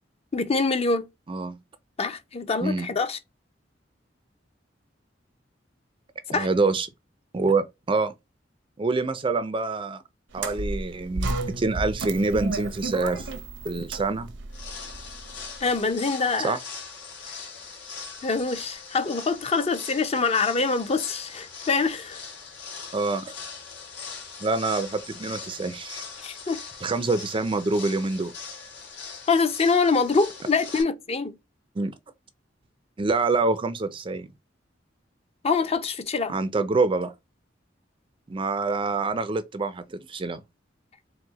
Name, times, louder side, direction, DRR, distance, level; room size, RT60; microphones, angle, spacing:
voice 1, 0.3-1.1 2.0-3.2 6.3-6.5 15.6-16.6 18.2-22.2 26.2-26.6 29.3-31.4 35.4-36.4, left 4 dB, 35° left, 0.6 m, -25 dB
voice 2, 6.3-6.9 7.3-8.1 8.8-10.0 10.3-13.3 13.6-14.3 16.4-16.6 22.9-23.3 24.4-26.1 26.8-28.3 31.8-31.9 33.0-34.3 36.3-37.1 38.3-40.4, right 3 dB, 30° right, 0.4 m, -26 dB
sound 1, 10.3-15.6, right 2 dB, 70° right, 0.7 m, -33 dB
sound 2, 14.5-30.8, left 5 dB, 70° left, 1.9 m, -41 dB
4.6 x 2.1 x 3.9 m
head